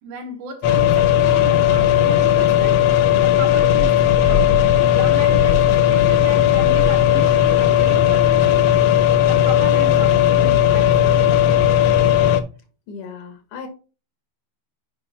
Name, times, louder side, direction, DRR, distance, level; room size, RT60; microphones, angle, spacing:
voice 1, 0.0-8.8 9.2-11.6, right 3 dB, 85° right, 2.8 m, -35 dB
sound 1, 0.6-12.4, left 11 dB, 70° left, 1.5 m, -16 dB
voice 2, 12.9-13.7, left 5 dB, 90° left, 2.8 m, -36 dB
6.8 x 5.0 x 4.1 m
omnidirectional pair, 3.3 m